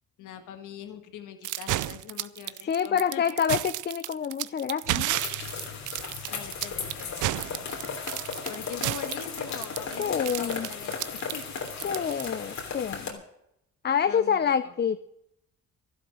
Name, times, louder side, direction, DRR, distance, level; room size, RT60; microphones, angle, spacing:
voice 1, 0.2-3.4 6.3-7.5 8.5-11.4 14.1-14.7, left 9 dB, 85° left, 8 dB, 1.6 m, -42 dB
sound 1, 1.4-12.7, right 16 dB, 80° right, 0.6 m, -32 dB
voice 2, 2.7-5.2 10.0-10.7 11.8-13.2 13.8-15.0, left 7 dB, 35° left, 12 dB, 0.6 m, -27 dB
sound 2, 5.1-13.1, left 5 dB, 65° left, 3.3 m, -36 dB
12.5 x 11.5 x 6.2 m, 0.78 s
cardioid pair, 90°, 30 cm